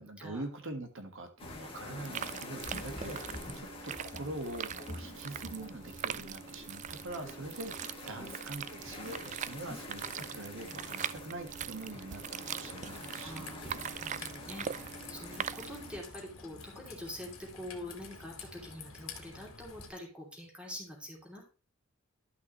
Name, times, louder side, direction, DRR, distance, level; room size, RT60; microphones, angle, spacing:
voice 1, 0.0-13.5, right 2 dB, 65° right, 6 dB, 1.7 m, -44 dB
sound 1, 1.4-16.0, left 2 dB, 25° left, 1.8 m, -47 dB
sound 2, 2.0-16.0, right 8 dB, 35° right, 0.3 m, -42 dB
Raindrop / Trickle dribble, 12.7-19.9, left 5 dB, 70° left, 1.8 m, -49 dB
voice 2, 13.2-14.7 15.1-21.5, left 1 dB, 5° right, -1 dB, 2.9 m, -45 dB
11.5 x 6.0 x 3.1 m, 0.34 s
head